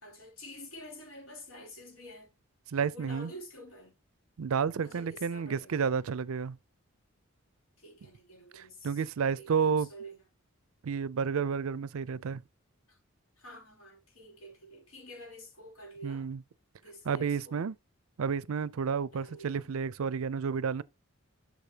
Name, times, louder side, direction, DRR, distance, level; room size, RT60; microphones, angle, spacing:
voice 1, 0.0-2.3 2.9-4.0 4.8-5.9 7.8-10.2 12.9-13.0 13.4-16.3 16.8-17.7 19.1-19.8, equal, 70° left, 3.3 m, -49 dB
voice 2, 2.7-3.3 4.4-6.6 8.5-9.9 10.8-12.4 16.0-16.4 17.1-17.7 18.2-20.8, right 6 dB, 75° right, 0.4 m, -31 dB
8.2 x 6.4 x 2.8 m
head